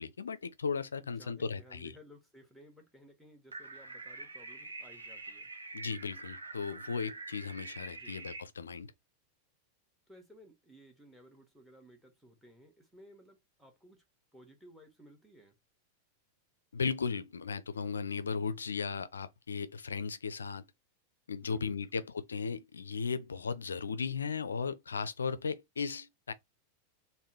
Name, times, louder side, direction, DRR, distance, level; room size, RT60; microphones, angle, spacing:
voice 1, 0.0-1.9 5.7-8.9 16.7-20.6 21.3-26.3, left 5 dB, 70° left, 0.4 m, -36 dB
voice 2, 1.0-5.5 7.9-8.2 10.1-14.0 14.3-15.5 21.4-21.9, equal, ahead, 1.2 m, -58 dB
sound 1, 3.5-8.4, right 3 dB, 75° right, 0.7 m, -46 dB
3.4 x 2.1 x 2.8 m
figure-of-eight pair, 90°, 0 cm